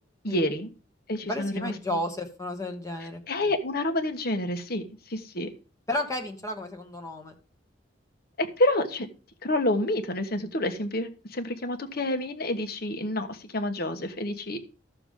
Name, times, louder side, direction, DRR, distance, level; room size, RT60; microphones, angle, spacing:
voice 1, 0.2-0.7 1.1-1.7 3.0-5.5 8.4-9.1 9.4-14.6, left 1 dB, 55° left, 7 dB, 1.3 m, -28 dB
voice 2, 1.2-3.2 5.9-7.3, left 1 dB, 15° left, 3 dB, 1.1 m, -32 dB
14.0 x 6.9 x 3.7 m, 0.36 s
head